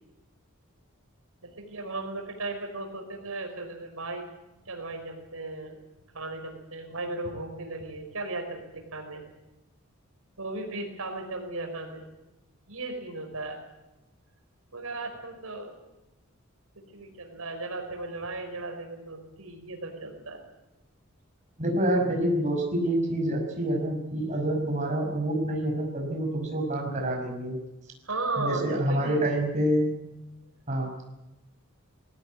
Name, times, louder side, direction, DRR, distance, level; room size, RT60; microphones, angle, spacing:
voice 1, 1.6-4.3 4.7-5.8 6.1-9.2 10.4-12.0 12.7-13.6 14.7-15.7 16.9-20.4 28.0-29.2, right 2 dB, 90° right, 3 dB, 5.3 m, -36 dB
voice 2, 21.6-27.6 28.4-29.9 30.7-30.9, right 1 dB, 35° right, 0 dB, 5.7 m, -27 dB
20.5 x 17.0 x 9.5 m, 1.0 s
head